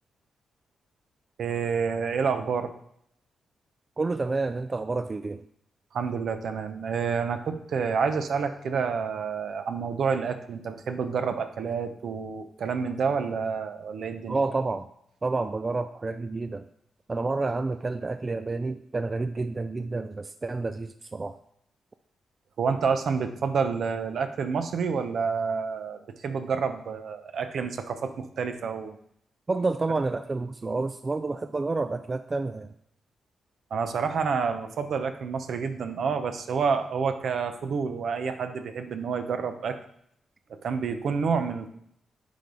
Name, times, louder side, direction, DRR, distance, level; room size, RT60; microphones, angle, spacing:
voice 1, 1.4-2.7 5.9-14.4 22.6-29.0 33.7-39.8 40.6-41.7, right 5 dB, 70° right, 8 dB, 0.7 m, -28 dB
voice 2, 4.0-5.5 14.3-14.9 15.2-16.7 17.1-21.4 29.5-32.7, right 3 dB, 35° right, 10 dB, 0.3 m, -29 dB
9.9 x 3.5 x 3.9 m, 0.71 s
cardioid pair, 70°, 0 cm